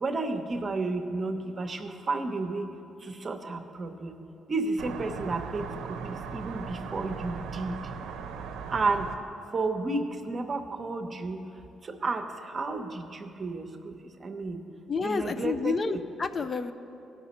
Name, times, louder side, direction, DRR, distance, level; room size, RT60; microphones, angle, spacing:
voice 1, 0.0-2.7 3.1-4.1 4.5-5.7 6.3-7.7 8.7-9.1 9.5-11.4 12.0-12.2 12.5-12.9 13.2-13.6 14.2-14.6 15.0-16.0, right 3 dB, 35° right, 6 dB, 0.8 m, -31 dB
sound 1, 4.8-9.1, right 6 dB, 90° right, 0.6 m, -38 dB
voice 2, 14.9-16.7, left 4 dB, 40° left, 10 dB, 0.4 m, -29 dB
17.0 x 6.0 x 4.2 m, 2.8 s
cardioid pair, 90°, 0 cm